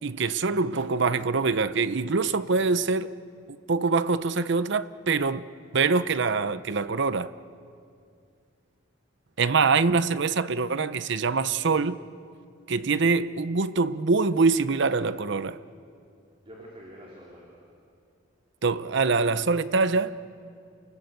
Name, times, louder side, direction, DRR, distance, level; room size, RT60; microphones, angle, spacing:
voice 1, 0.0-3.1 3.7-5.4 5.7-7.3 9.4-12.0 12.7-15.6 18.6-20.2, right 4 dB, 60° right, 0.7 m, -24 dB
voice 2, 16.4-17.6, equal, 30° right, 3.8 m, -47 dB
29.5 x 19.5 x 8.0 m
head